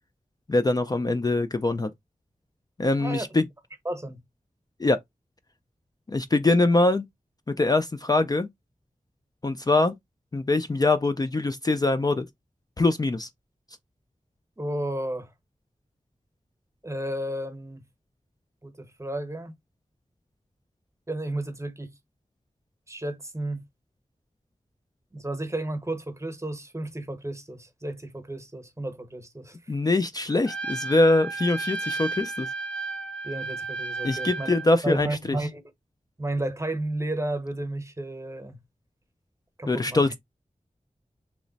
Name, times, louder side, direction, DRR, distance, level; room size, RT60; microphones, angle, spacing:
voice 1, 0.5-1.9 2.8-3.4 4.8-5.0 6.1-7.0 7.6-8.5 9.4-9.9 10.3-12.3 12.8-13.3 29.7-32.5 34.0-35.4 39.7-40.2, left 2 dB, 30° left, 0.3 m, -23 dB
voice 2, 3.0-3.4 3.8-4.2 14.6-15.3 16.8-17.8 18.6-19.5 21.1-21.9 22.9-23.6 25.1-29.6 33.2-34.6 34.8-35.6 36.2-38.6 39.6-40.1, right 1 dB, 20° right, 0.9 m, -32 dB
Trumpet, 30.4-34.7, right 3 dB, 10° left, 0.7 m, -33 dB
3.1 x 2.1 x 3.9 m
wide cardioid pair, 50°, 13 cm